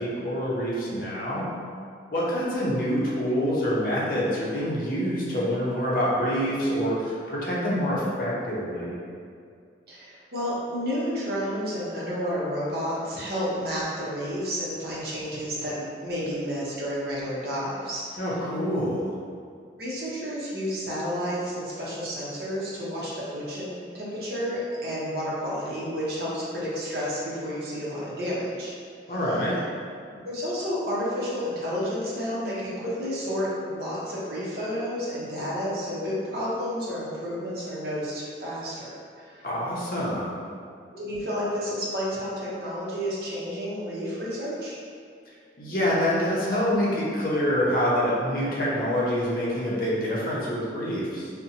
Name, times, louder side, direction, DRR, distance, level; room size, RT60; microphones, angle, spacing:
voice 1, 0.0-1.5 2.1-9.0 18.2-19.1 29.1-29.6 39.4-40.4 45.6-51.3, equal, 50° left, -6 dB, 0.6 m, -26 dB
voice 2, 9.9-18.2 19.8-28.7 30.2-38.9 39.2-39.4 40.9-44.8, equal, 60° right, -8 dB, 0.7 m, -31 dB
2.6 x 2.1 x 2.7 m, 2.2 s
head